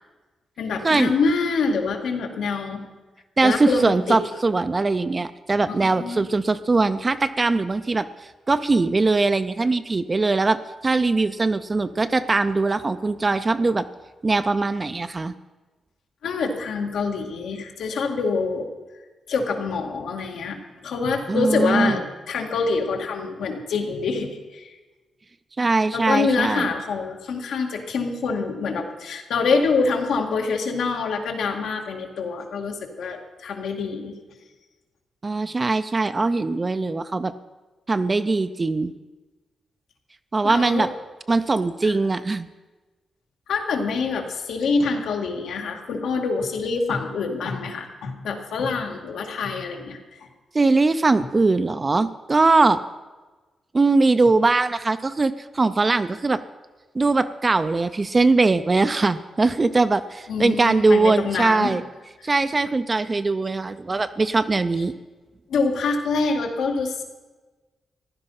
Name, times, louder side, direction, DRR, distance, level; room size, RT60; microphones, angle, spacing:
voice 1, 0.6-2.9 3.4-4.2 5.7-6.2 16.2-18.7 19.3-24.8 25.9-34.2 40.4-40.9 41.8-42.0 43.5-50.3 51.2-51.3 60.3-61.8 62.2-62.3 65.5-67.0, left 4 dB, 85° left, 3 dB, 2.1 m, -26 dB
voice 2, 3.4-10.6 10.8-13.9 14.2-15.3 21.3-22.0 25.6-26.7 35.2-37.3 37.9-38.9 40.3-40.9 41.3-42.5 50.5-52.8 53.7-56.4 56.9-61.8 62.2-64.9, right 3 dB, 20° right, 11 dB, 0.4 m, -21 dB
15.0 x 11.5 x 5.7 m, 1.2 s
wide cardioid pair, 175°, 0 cm